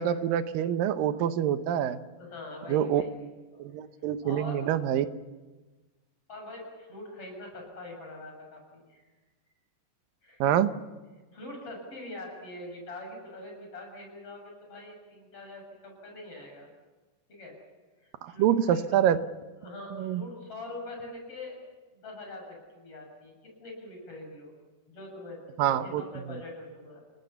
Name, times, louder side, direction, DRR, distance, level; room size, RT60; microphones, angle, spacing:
voice 1, 0.0-2.0 2.7-3.0 3.6-5.1 10.4-10.7 18.2-19.2 19.9-20.2 25.6-26.0, right 10 dB, 85° right, 11 dB, 2.7 m, -26 dB
voice 2, 2.2-3.1 3.5-3.7 4.2-4.6 6.3-9.0 10.2-10.4 11.3-16.7 17.3-17.5 18.0-19.0 19.6-21.6 21.9-23.3 23.6-24.5 24.9-27.0, left 2 dB, 40° left, 1 dB, 8.2 m, -43 dB
29.5 x 19.0 x 7.0 m, 1.2 s
omnidirectional pair, 3.9 m